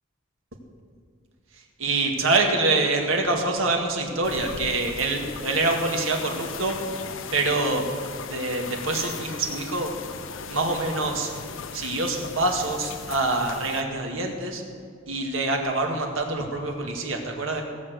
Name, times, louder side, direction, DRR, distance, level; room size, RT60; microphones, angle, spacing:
voice 1, 1.8-6.8 7.3-7.8 8.3-9.9 10.5-11.3 11.7-14.6 15.1-17.6, right 2 dB, 75° right, 2 dB, 1.9 m, -25 dB
sound 1, 4.2-13.8, left 6 dB, 65° left, 0.7 m, -38 dB
17.5 x 6.5 x 7.8 m, 2.1 s
head